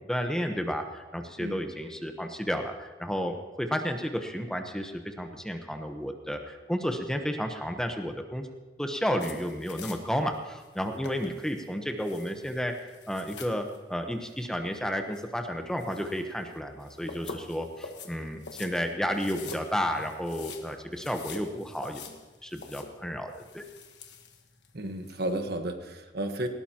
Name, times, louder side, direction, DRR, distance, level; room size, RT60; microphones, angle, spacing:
voice 1, 0.0-8.5 8.8-22.1 22.4-23.6, equal, 5° left, 5 dB, 1.0 m, -32 dB
sound 1, 9.2-25.5, left 4 dB, 75° left, 1.4 m, -47 dB
voice 2, 24.7-26.5, right 1 dB, 65° right, 6 dB, 1.3 m, -33 dB
19.0 x 17.5 x 2.9 m, 1.2 s
head